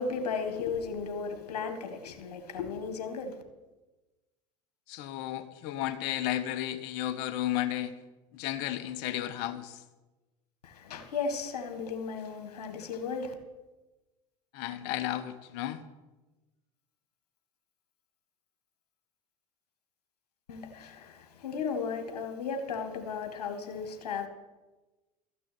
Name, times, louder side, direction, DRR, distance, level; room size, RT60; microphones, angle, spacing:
voice 1, 0.0-3.4 10.6-13.3 20.5-24.3, left 5 dB, 85° left, 1.8 m, -35 dB
voice 2, 4.9-7.9 8.3-9.8 14.5-15.8, left 13 dB, 60° left, 1.1 m, -33 dB
13.5 x 6.1 x 9.4 m
hypercardioid pair, 90°, 20 cm